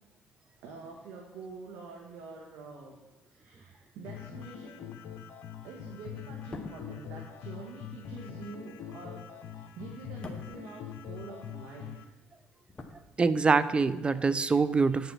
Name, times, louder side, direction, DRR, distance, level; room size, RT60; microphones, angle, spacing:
voice 1, 0.6-3.0 3.3-4.9 5.6-12.1 14.2-14.3, right 4 dB, 75° right, 0 dB, 1.7 m, -46 dB
sound 1, 4.1-12.0, left 9 dB, 70° left, 0.8 m, -43 dB
sound 2, 6.3-11.6 11.9-13.7 14.0-14.2, left 3 dB, 25° left, 1.4 m, -48 dB
voice 2, 13.2-15.1, right 4 dB, 25° right, 14 dB, 0.6 m, -25 dB
9.7 x 6.9 x 5.8 m, 1.1 s
supercardioid pair, 80°, 4 cm